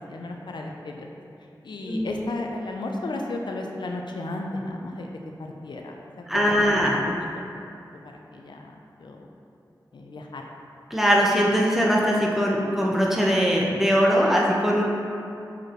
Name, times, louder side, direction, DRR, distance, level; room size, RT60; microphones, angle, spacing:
voice 1, 0.1-1.1 1.6-5.1 5.6-6.9 8.0-8.7 9.0-9.3 9.9-10.4, left 2 dB, 80° left, 1 dB, 0.5 m, -34 dB
voice 2, 6.3-7.0 10.9-14.8, equal, 5° right, -3 dB, 1.1 m, -21 dB
6.6 x 4.7 x 3.0 m, 2.6 s
cardioid pair, 45°, 8 cm